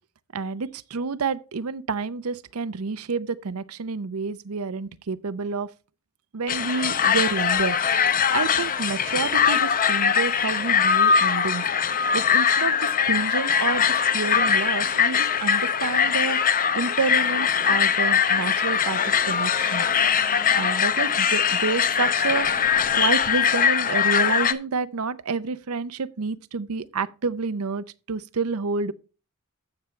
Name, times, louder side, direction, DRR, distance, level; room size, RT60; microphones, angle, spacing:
voice 1, 0.3-5.7 6.3-11.6 12.1-19.0 19.2-19.8 20.6-28.9, right 4 dB, 80° right, 0.6 m, -29 dB
sound 1, 6.5-24.5, left 7 dB, 40° left, 0.7 m, -22 dB
14.5 x 5.9 x 3.2 m
head